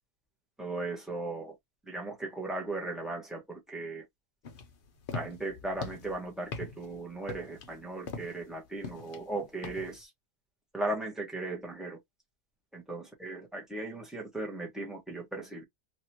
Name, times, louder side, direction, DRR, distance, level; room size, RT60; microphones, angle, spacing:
voice 1, 0.6-1.5 1.9-4.0 5.1-10.1 10.7-12.0 12.7-15.6, right 2 dB, ahead, 0.9 m, -37 dB
sound 1, 4.4-10.0, left 4 dB, 80° left, 0.4 m, -42 dB
3.0 x 2.9 x 2.8 m
omnidirectional pair, 1.8 m